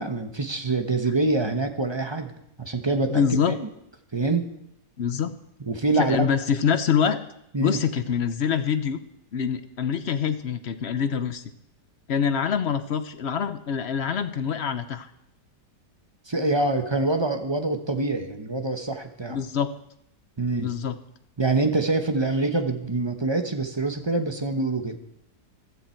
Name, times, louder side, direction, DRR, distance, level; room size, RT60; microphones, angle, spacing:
voice 1, 0.0-2.3 2.6-3.7 4.1-4.5 5.7-6.3 7.5-7.8 16.3-19.4 20.4-20.7 21.4-25.0, right 2 dB, 20° right, 6 dB, 0.8 m, -25 dB
voice 2, 3.1-3.6 5.0-5.3 6.0-7.2 7.6-9.0 9.3-11.4 12.1-15.1 19.3-19.7 20.6-21.0, left 7 dB, 55° left, 11 dB, 0.8 m, -25 dB
15.0 x 12.5 x 4.5 m, 0.78 s
omnidirectional pair, 1.8 m